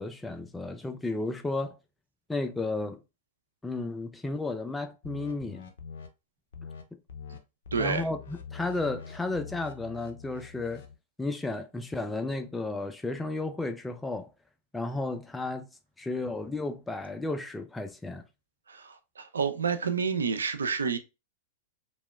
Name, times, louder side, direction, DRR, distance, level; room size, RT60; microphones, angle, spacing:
voice 1, 0.0-1.7 2.3-3.0 3.6-5.6 7.8-10.8 11.2-14.3 14.7-15.7 16.0-18.2, left 2 dB, 10° left, 0.4 m, -33 dB
sound 1, 5.0-6.1 6.5-6.8 7.1-7.4 7.6-10.9, left 6 dB, 70° left, 0.4 m, -44 dB
voice 2, 7.7-8.1 18.7-21.0, right 5 dB, 90° right, 0.4 m, -29 dB
2.8 x 2.1 x 2.2 m
hypercardioid pair, 110°, 0 cm